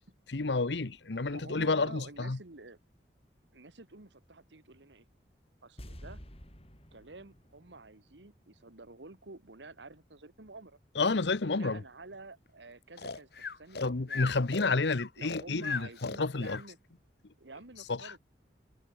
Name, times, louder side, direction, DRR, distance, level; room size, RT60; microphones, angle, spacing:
voice 1, 0.3-2.4 11.0-11.8 13.8-16.6 17.9-18.1, left 3 dB, 80° left, 1.0 m, -30 dB
voice 2, 1.3-2.8 3.5-5.1 5.6-6.2 6.9-10.8 11.4-13.3 13.6-14.8 15.2-16.8 17.4-18.2, right 3 dB, 85° right, 1.8 m, -50 dB
sound 1, 5.8-9.0 9.2-9.3, equal, 35° left, 6.1 m, -51 dB
Breathing, 13.0-16.7, left 5 dB, 65° left, 1.6 m, -38 dB
head